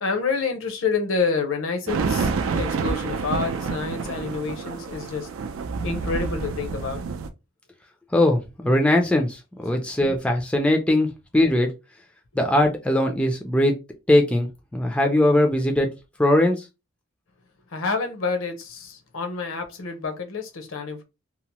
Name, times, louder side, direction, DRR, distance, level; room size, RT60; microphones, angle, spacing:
voice 1, 0.0-5.3 5.8-7.0 17.7-21.0, left 4 dB, 75° left, 0.7 m, -28 dB
sound 1, 1.9-7.3, right 4 dB, 80° right, 0.4 m, -28 dB
voice 2, 8.1-11.7 12.3-13.7 14.1-14.5 14.7-15.9 16.2-16.7, left 1 dB, 5° left, 0.4 m, -20 dB
2.8 x 2.1 x 2.9 m
head